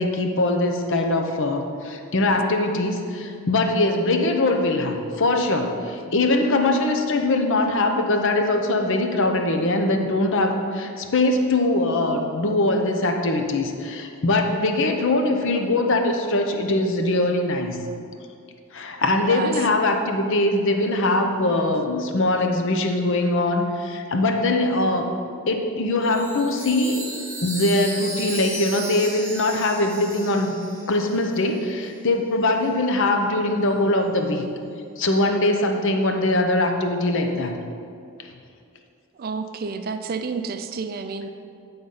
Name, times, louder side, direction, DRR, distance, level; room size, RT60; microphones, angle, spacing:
voice 1, 0.0-17.8 18.7-25.1 25.5-27.1 27.4-30.6 30.9-34.4 35.0-37.6, left 2 dB, 60° left, 4 dB, 0.7 m, -22 dB
voice 2, 19.2-19.6 39.1-41.3, right 4 dB, 40° right, 8 dB, 0.4 m, -30 dB
Chime, 26.0-31.6, right 2 dB, 10° right, 0.7 m, -35 dB
9.3 x 3.9 x 5.5 m, 2.3 s
head